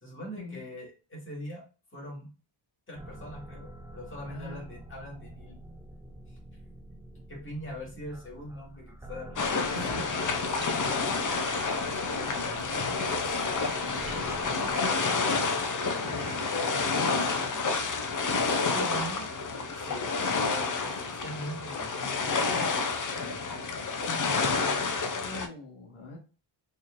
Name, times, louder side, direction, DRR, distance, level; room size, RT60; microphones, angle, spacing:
voice 1, 0.0-1.6 1.9-2.3 2.9-5.5 7.3-9.4 9.7-10.0 14.8-15.4 16.5-17.6 18.4-19.3 19.7-22.3, equal, 25° left, -3 dB, 1.9 m, -42 dB
sound 1, 2.9-14.9, right 2 dB, 10° right, 0.3 m, -47 dB
voice 2, 4.3-4.7 9.7-9.9 12.1-14.1 15.2-15.5 16.0-16.3 24.1-24.9 25.2-26.2, left 2 dB, 80° left, -1 dB, 1.5 m, -45 dB
sound 2, 9.4-25.5, left 4 dB, 40° left, 0.6 m, -29 dB
Bathtub (filling or washing), 10.0-21.7, right 2 dB, 65° right, 1.4 m, -47 dB
4.2 x 3.1 x 2.5 m, 0.33 s
wide cardioid pair, 115°, 49 cm